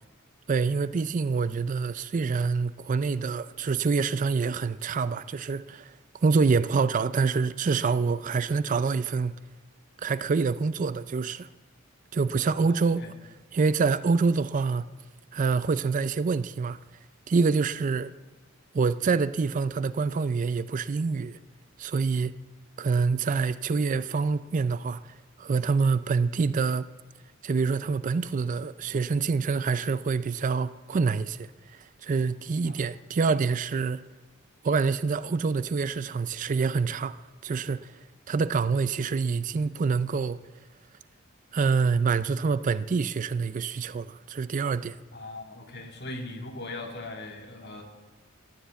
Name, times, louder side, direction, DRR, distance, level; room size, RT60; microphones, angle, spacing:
voice 1, 0.5-9.3 10.0-11.5 12.1-13.0 13.5-14.9 15.3-16.8 17.3-18.1 18.7-21.4 21.8-22.4 22.8-26.9 27.4-34.0 34.6-37.9 38.3-40.4 41.5-45.0, right 4 dB, 40° right, 0.4 m, -26 dB
voice 2, 12.4-13.1 32.6-32.8 45.1-47.8, left 2 dB, 50° left, 2.2 m, -40 dB
14.5 x 9.9 x 8.1 m
head